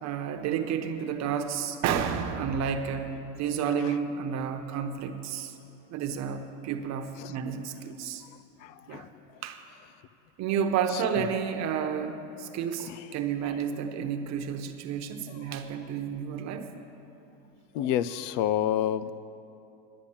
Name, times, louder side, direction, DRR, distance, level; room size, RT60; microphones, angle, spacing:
voice 1, 0.0-3.1 3.4-5.6 5.9-8.2 8.9-9.1 9.4-9.6 10.4-16.7, right 7 dB, 50° right, 6 dB, 1.1 m, -31 dB
voice 2, 8.6-9.4 10.9-11.0 12.8-13.1 15.3-15.4 17.7-19.1, left 11 dB, 80° left, 16 dB, 0.6 m, -30 dB
10.0 x 10.0 x 7.2 m, 2.9 s
supercardioid pair, 115°, 35 cm